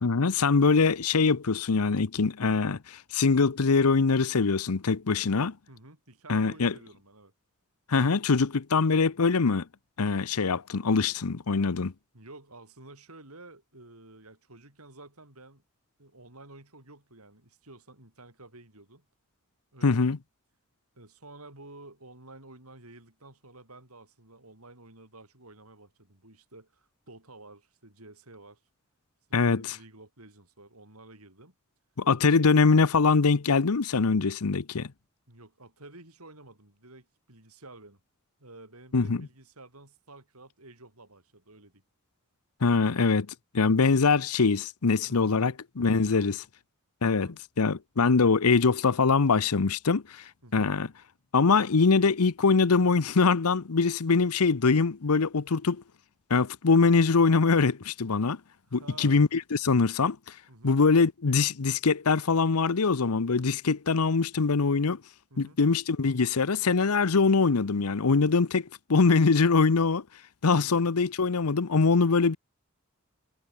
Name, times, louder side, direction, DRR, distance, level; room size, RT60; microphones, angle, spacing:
voice 1, 0.0-5.6 6.3-6.7 7.9-9.7 10.0-11.9 19.8-20.2 29.3-29.8 32.0-34.9 38.9-39.3 42.6-43.3 43.5-46.3 47.0-50.2 50.5-50.9 51.3-55.8 56.3-58.4 58.7-60.2 60.6-65.0 65.4-70.0 70.4-72.4, left 4 dB, 85° left, 0.8 m, -23 dB
voice 2, 5.7-7.3 11.0-11.1 11.7-11.9 12.1-15.6 16.0-19.1 19.7-20.2 20.9-28.6 29.3-31.5 35.3-38.0 38.4-41.8 45.0-45.5 46.0-46.3 47.1-47.4 50.4-50.7 58.7-59.3 60.5-60.8 65.3-65.6 70.5-70.8, right 2 dB, 75° right, 7.9 m, -51 dB
head